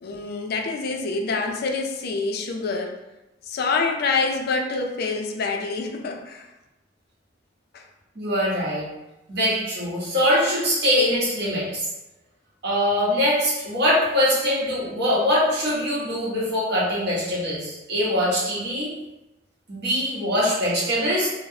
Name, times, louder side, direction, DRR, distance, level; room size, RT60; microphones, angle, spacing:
voice 1, 0.0-3.0 3.5-6.5 7.7-7.8, left 4 dB, 55° left, 3 dB, 0.4 m, -26 dB
voice 2, 8.1-8.9 9.3-11.9 12.6-18.9 19.7-21.3, equal, 60° right, -6 dB, 1.1 m, -23 dB
3.0 x 2.0 x 2.7 m, 0.99 s
head